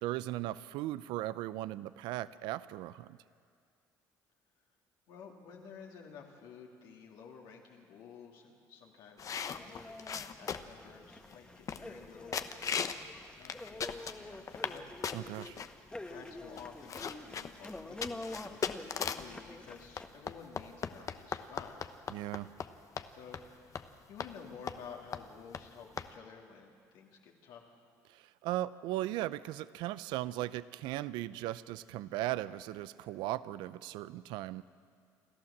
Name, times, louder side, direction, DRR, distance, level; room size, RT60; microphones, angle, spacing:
voice 1, 0.0-3.2 15.1-15.6 22.1-22.5 28.1-34.6, right 15 dB, 80° right, 16 dB, 0.5 m, -37 dB
voice 2, 5.1-15.2 16.0-21.9 23.1-27.7, left 6 dB, 80° left, -1 dB, 3.0 m, -52 dB
sound 1, 9.2-10.8 11.3-11.4 11.7-12.0 12.3-13.0 13.4-14.8 15.0-15.7 16.3-16.4 16.6-19.3 20.0-22.7 23.0-23.1 23.3-23.5 23.7-23.9 24.2-24.3 24.7-24.9 25.1-25.2 25.5-25.6 26.0-26.1, left 7 dB, 45° left, 1.0 m, -38 dB
sound 2, 9.5-20.1, left 2 dB, 10° left, 1.4 m, -47 dB
28.5 x 12.5 x 7.3 m, 2.3 s
supercardioid pair, 80°, 8 cm